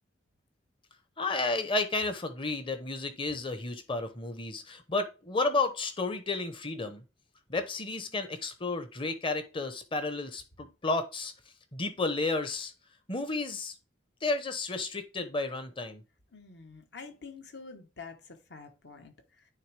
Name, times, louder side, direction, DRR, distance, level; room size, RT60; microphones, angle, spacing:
voice 1, 1.2-7.0 7.5-11.3 11.7-12.7 13.1-13.7 14.2-16.0, left 3 dB, 25° left, 0.8 m, -32 dB
voice 2, 16.3-19.1, left 4 dB, 60° left, 1.1 m, -47 dB
9.3 x 3.5 x 3.3 m
head